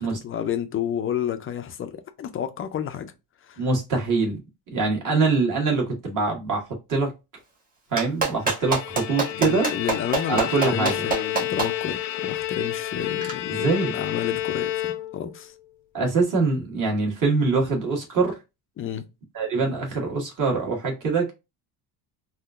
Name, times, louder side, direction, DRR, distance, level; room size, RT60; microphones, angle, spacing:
voice 1, 0.0-3.1 3.4-3.6 9.3-15.5 18.8-19.1, left 9 dB, 30° left, 0.4 m, -31 dB
voice 2, 3.6-4.4 4.7-7.1 7.9-9.7 10.3-11.0 13.5-14.0 15.9-18.3 19.3-21.3, right 3 dB, 40° right, 1.5 m, -24 dB
Clapping, 8.0-11.7 13.2-13.3, right 4 dB, 20° right, 1.2 m, -24 dB
Bowed string instrument, 8.4-15.4, left 12 dB, 80° left, 0.6 m, -30 dB
3.6 x 2.5 x 2.3 m
cardioid pair, 150°, 46 cm